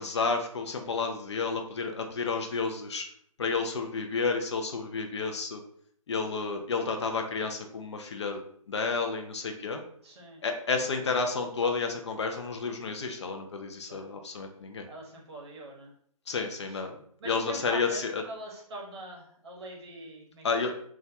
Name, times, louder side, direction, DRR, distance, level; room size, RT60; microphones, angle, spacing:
voice 1, 0.0-3.0 3.4-5.6 6.1-8.4 8.7-9.8 10.4-14.9 16.3-17.0 17.2-18.2 20.4-20.7, left 4 dB, 50° left, 4 dB, 0.4 m, -31 dB
voice 2, 10.0-10.4 10.7-11.3 13.9-14.0 14.9-15.9 16.6-16.8 17.2-20.7, right 1 dB, 45° right, -2 dB, 0.7 m, -43 dB
2.2 x 2.1 x 2.6 m, 0.62 s
figure-of-eight pair, 140°, 18 cm